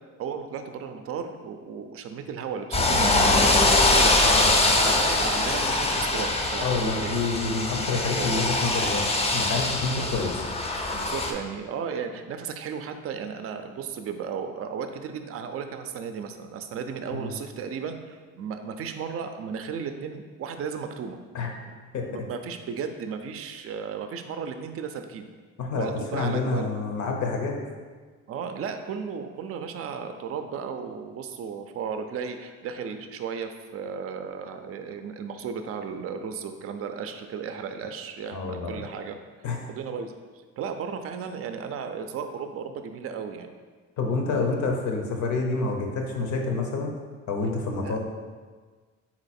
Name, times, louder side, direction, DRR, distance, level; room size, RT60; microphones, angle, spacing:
voice 1, 0.2-7.1 8.1-8.3 10.0-10.3 10.9-21.2 22.1-25.3 25.7-26.7 28.3-39.2 39.7-40.2 40.6-43.5 44.3-44.5 47.8-48.0, right 6 dB, 50° right, 7 dB, 0.4 m, -35 dB
sound 1, 2.7-11.3, left 2 dB, 20° left, 0.5 m, -23 dB
voice 2, 4.2-4.5 6.6-10.3 17.1-17.3 21.3-21.5 21.9-22.2 25.6-27.6 38.3-38.8 39.4-39.6 44.0-46.9 47.3-48.0, left 3 dB, 75° left, 2 dB, 0.8 m, -28 dB
3.8 x 2.9 x 4.2 m, 1.5 s
cardioid pair, 90°, 30 cm